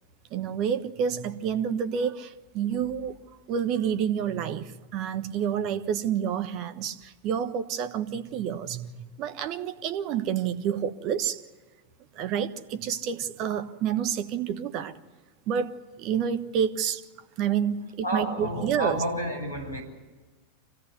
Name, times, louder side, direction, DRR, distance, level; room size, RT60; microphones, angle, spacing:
voice 1, 0.3-3.2 3.5-11.4 12.1-15.0 15.5-17.0 17.4-19.0, right 8 dB, 40° right, 1.3 m, -29 dB
voice 2, 18.0-19.8, right 1 dB, 90° left, 5.9 m, -30 dB
25.5 x 17.0 x 9.7 m
figure-of-eight pair, 90°, 0 cm